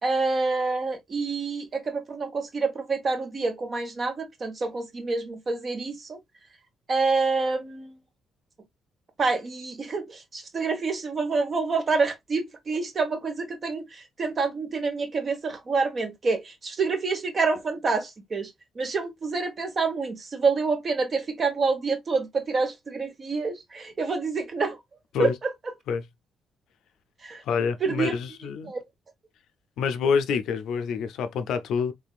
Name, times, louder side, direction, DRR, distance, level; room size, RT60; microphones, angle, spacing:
voice 1, 0.0-6.2 6.9-8.0 9.2-24.8 25.2-25.5 27.2-27.4 27.8-28.2 28.7-28.8, right 4 dB, 35° right, 1.2 m, -27 dB
voice 2, 27.4-28.7 29.8-31.9, left 6 dB, 80° left, 0.5 m, -27 dB
3.5 x 3.3 x 2.4 m
cardioid pair, 115°, 0 cm